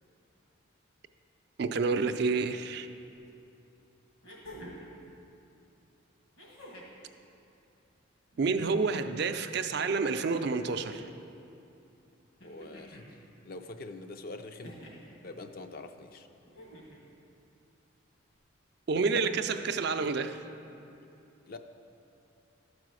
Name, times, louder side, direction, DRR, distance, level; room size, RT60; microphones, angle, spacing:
voice 1, 1.6-2.9 8.4-11.1 18.9-20.4, right 4 dB, 55° right, 9 dB, 0.4 m, -29 dB
sound 1, 3.2-3.3 4.2-4.9 6.4-7.0 8.3-9.0 10.2-11.0 12.4-13.1 14.6-15.1 16.4-17.0 18.3-18.4, equal, 75° left, 2.0 m, -49 dB
voice 2, 12.4-13.2 13.4-14.8 15.2-16.3 21.5-21.6, left 2 dB, 50° left, 7 dB, 0.5 m, -44 dB
12.0 x 4.9 x 6.2 m, 2.8 s
head